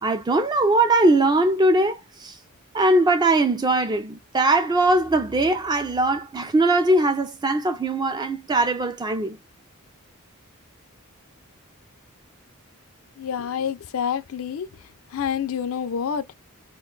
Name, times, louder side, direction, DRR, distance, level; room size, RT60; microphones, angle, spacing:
voice 1, 0.0-2.3 2.7-9.4, right 2 dB, 20° right, 0.4 m, -21 dB
voice 2, 13.2-14.7 15.1-16.3, left 7 dB, 65° left, 0.4 m, -27 dB
2.4 x 2.2 x 3.8 m
head